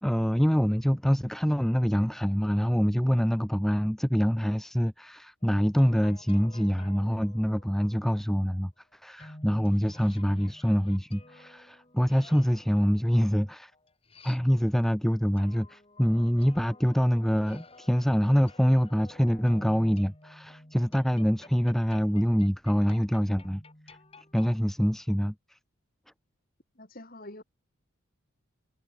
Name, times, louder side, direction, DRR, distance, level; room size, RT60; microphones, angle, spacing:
voice 1, 0.0-13.7 14.2-24.0 24.3-25.6, equal, ahead, 0.4 m, -25 dB
sound 1, 5.4-8.0 9.2-14.9 15.4-24.5, left 2 dB, 25° left, 3.4 m, -52 dB
voice 2, 26.7-27.4, left 1 dB, 40° left, 3.4 m, -45 dB
head